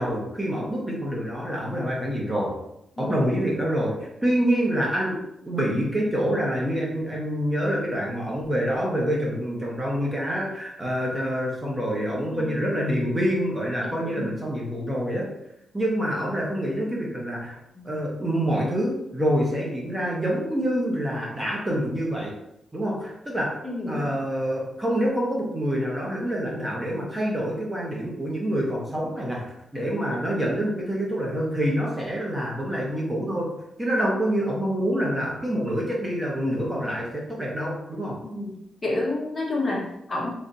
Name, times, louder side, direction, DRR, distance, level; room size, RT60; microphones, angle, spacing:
voice 1, 0.0-2.6 3.0-15.3 15.7-17.6 17.8-22.3 22.7-23.6 23.9-38.2, equal, 15° right, -3 dB, 0.8 m, -26 dB
voice 2, 14.0-14.3 17.8-17.9 23.6-24.1 38.2-38.5 38.8-40.3, left 2 dB, 25° left, -2 dB, 0.8 m, -29 dB
3.2 x 2.5 x 3.9 m, 0.81 s
wide cardioid pair, 145°, 0 cm